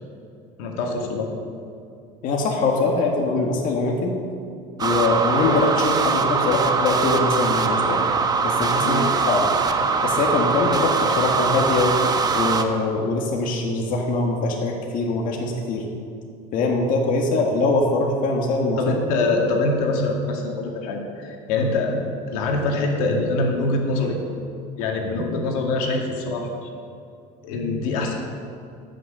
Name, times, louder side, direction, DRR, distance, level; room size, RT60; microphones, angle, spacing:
voice 1, 0.6-1.3 8.8-9.1 18.8-22.0 22.3-24.2 24.8-26.7 27.4-28.1, left 2 dB, 80° left, 1 dB, 2.1 m, -24 dB
voice 2, 2.2-4.1 4.8-8.0 8.4-9.0 9.3-9.5 10.0-12.0 12.3-15.8 16.5-18.8, left 3 dB, 50° left, 0 dB, 1.6 m, -22 dB
sound 1, 4.8-12.6, right 4 dB, 20° right, 0.9 m, -22 dB
14.5 x 6.4 x 6.7 m, 2.5 s
supercardioid pair, 120°, 18 cm